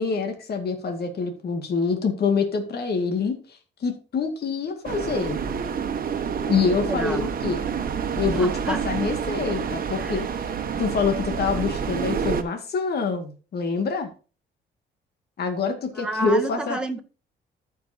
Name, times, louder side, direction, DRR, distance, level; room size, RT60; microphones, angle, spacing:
voice 1, 0.0-5.4 6.5-7.6 8.2-10.5 10.8-14.1 15.4-16.8, left 5 dB, 60° left, 2.1 m, -26 dB
sound 1, 4.8-12.4, right 6 dB, 50° right, 1.2 m, -28 dB
voice 2, 6.9-7.3 8.3-8.8 10.0-10.2 15.9-17.0, right 2 dB, 5° right, 1.9 m, -30 dB
14.0 x 6.1 x 2.8 m
cardioid pair, 85°, 19 cm